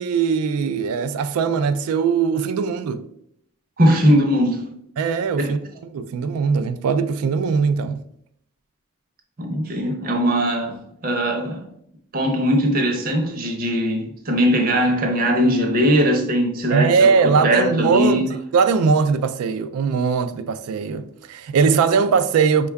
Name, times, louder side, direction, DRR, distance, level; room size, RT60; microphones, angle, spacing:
voice 1, 0.0-3.0 5.0-5.6 5.9-8.0 16.7-18.2 18.5-22.7, right 5 dB, 85° right, 0.3 m, -20 dB
voice 2, 3.8-4.7 5.3-5.5 9.4-11.6 12.1-18.3, equal, 40° right, 0.7 m, -20 dB
5.2 x 2.3 x 3.4 m
head